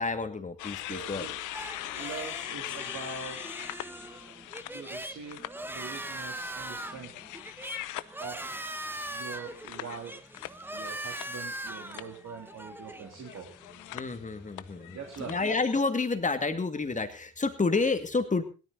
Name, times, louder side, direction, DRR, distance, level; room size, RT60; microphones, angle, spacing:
voice 1, 0.0-1.3 13.9-15.0 15.3-18.4, left 3 dB, 25° left, 8 dB, 2.3 m, -29 dB
sound 1, 0.6-5.5 5.9-11.6 11.9-12.2 13.1-15.8, left 15 dB, 90° left, 0.8 m, -42 dB
voice 2, 0.9-1.4 1.8-3.5 4.0-4.3 4.7-7.1 8.2-8.5 9.0-10.2 10.7-13.5 14.9-15.4, right 5 dB, 60° right, 2 dB, 3.4 m, -43 dB
sound 2, 1.5-15.5, right 1 dB, 5° right, 1.3 m, -41 dB
17.0 x 13.0 x 4.1 m, 0.33 s
cardioid pair, 90°, 30 cm